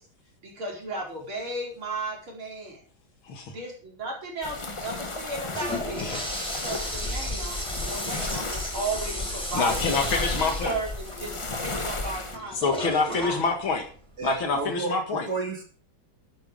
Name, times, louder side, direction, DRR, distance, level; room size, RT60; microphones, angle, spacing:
voice 1, 0.4-2.8 3.5-6.1 6.6-9.8 10.3-11.3 11.6-13.4, right 2 dB, 90° right, -2 dB, 5.5 m, -35 dB
sound 1, 4.4-12.4, left 2 dB, 30° left, 0.6 m, -33 dB
Toilet flush, 5.3-14.7, equal, ahead, 4.8 m, -36 dB
voice 2, 9.5-10.8 12.5-13.9 14.2-15.3, left 4 dB, 80° left, 4 dB, 2.6 m, -26 dB
voice 3, 14.2-14.9 15.3-15.6, right 3 dB, 50° right, 2 dB, 2.8 m, -31 dB
12.0 x 9.6 x 5.2 m, 0.43 s
omnidirectional pair, 2.2 m